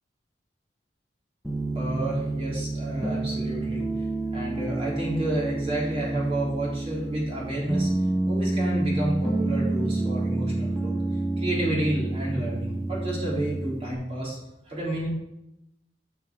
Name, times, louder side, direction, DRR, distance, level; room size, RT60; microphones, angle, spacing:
Piano, 1.4-13.9, right 2 dB, ahead, 1.3 m, -29 dB
voice 1, 1.8-4.1 4.3-7.9 8.3-10.9 11.4-14.4 14.7-15.1, right 1 dB, 35° right, -5 dB, 3.5 m, -30 dB
11.0 x 5.8 x 4.8 m, 0.87 s
head